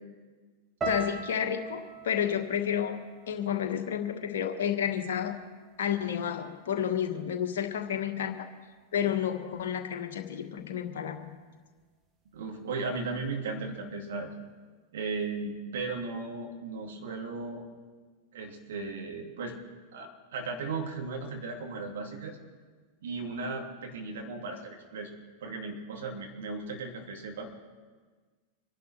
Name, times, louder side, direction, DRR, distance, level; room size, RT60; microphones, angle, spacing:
voice 1, 0.8-3.0 3.3-5.3 5.8-8.4 8.9-11.3, left 9 dB, 60° left, 5 dB, 1.6 m, -30 dB
sound 1, 0.8-5.0 5.3-6.1 6.6-6.9, right 2 dB, 20° right, 1.9 m, -41 dB
voice 2, 12.3-14.3 14.9-17.6 18.3-19.6 19.9-22.4 23.0-25.1 25.4-27.5, right 3 dB, 60° right, 1 dB, 2.9 m, -36 dB
25.0 x 11.5 x 4.5 m, 1.4 s
figure-of-eight pair, 90°, 0 cm